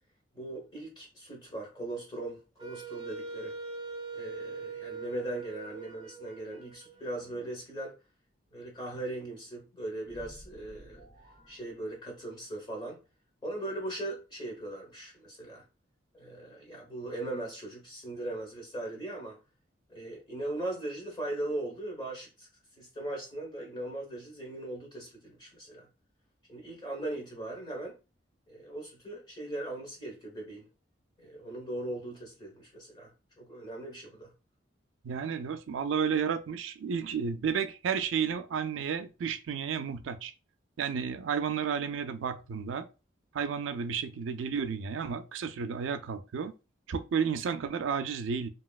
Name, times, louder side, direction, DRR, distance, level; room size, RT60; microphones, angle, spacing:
voice 1, 0.3-3.5 4.1-7.9 8.5-11.1 11.5-13.0 13.4-15.6 16.1-19.4 19.9-22.5 22.8-25.9 26.5-28.0 28.5-30.7 31.2-34.3, right 1 dB, 25° left, 1.0 m, -39 dB
Wind instrument woodwind instrument, 2.6-7.5, right 4 dB, 20° right, 0.6 m, -42 dB
sound 1, 10.0-12.6, equal, 70° left, 1.5 m, -54 dB
voice 2, 35.0-40.3 40.8-42.9 43.3-46.5 46.9-48.5, right 6 dB, 85° right, 0.4 m, -32 dB
2.9 x 2.8 x 2.3 m
head